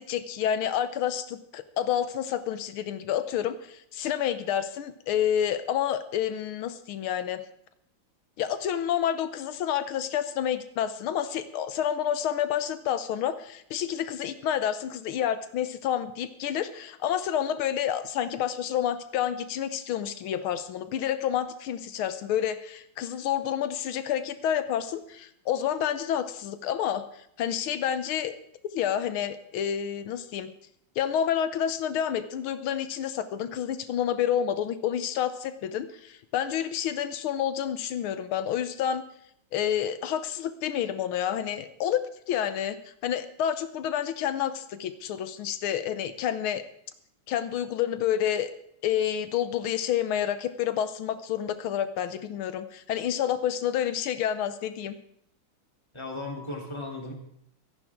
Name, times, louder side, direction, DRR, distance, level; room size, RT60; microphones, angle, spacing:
voice 1, 0.0-7.4 8.4-27.0 27.4-28.3 28.7-30.5 31.0-39.0 39.5-42.0 42.3-46.6 47.3-48.5 48.8-55.0, left 9 dB, 90° left, 11 dB, 1.7 m, -29 dB
voice 2, 55.9-57.1, left 2 dB, 15° left, 0 dB, 3.2 m, -36 dB
25.0 x 11.0 x 3.7 m, 0.71 s
omnidirectional pair, 2.3 m